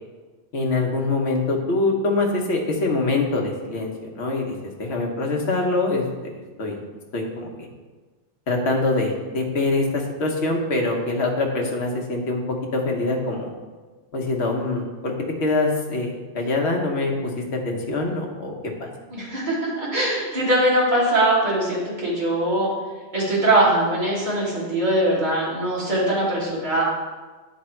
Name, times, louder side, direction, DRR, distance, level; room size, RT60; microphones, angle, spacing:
voice 1, 0.5-6.3 6.6-6.8 7.1-7.7 8.5-12.4 12.7-13.5 14.1-15.1 15.4-17.3 17.6-18.5 18.8-18.9, left 2 dB, 75° left, 1 dB, 1.3 m, -24 dB
voice 2, 19.1-22.7 23.1-26.8, right 1 dB, 40° right, -8 dB, 2.2 m, -21 dB
9.5 x 3.3 x 4.4 m, 1.3 s
omnidirectional pair, 1.1 m